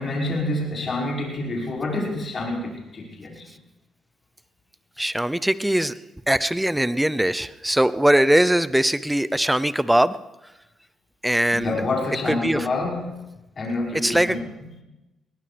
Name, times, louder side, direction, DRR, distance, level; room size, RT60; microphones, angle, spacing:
voice 1, 0.0-3.4 11.5-13.2 13.6-14.5, left 2 dB, 40° left, -4 dB, 6.1 m, -27 dB
voice 2, 5.0-5.9 6.3-10.2 11.2-11.8 12.3-12.7 14.0-14.4, right 1 dB, 5° right, 15 dB, 0.6 m, -21 dB
22.0 x 18.5 x 3.4 m, 1.0 s
cardioid pair, 90°, 0 cm